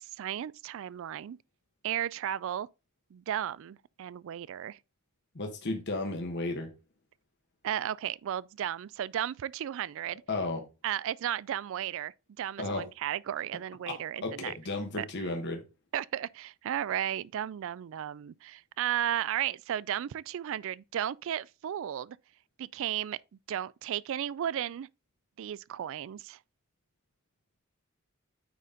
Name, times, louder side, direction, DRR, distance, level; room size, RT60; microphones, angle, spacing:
voice 1, 0.0-1.4 1.8-2.7 3.1-4.8 7.6-10.2 10.8-14.5 15.0-15.1 15.9-22.2 22.6-23.2 23.5-24.9 25.4-26.4, right 10 dB, 65° right, 0.3 m, -34 dB
voice 2, 5.3-6.7 10.3-10.7 12.6-12.9 13.9-15.6, left 2 dB, 55° left, 1.2 m, -34 dB
9.3 x 4.1 x 3.7 m
head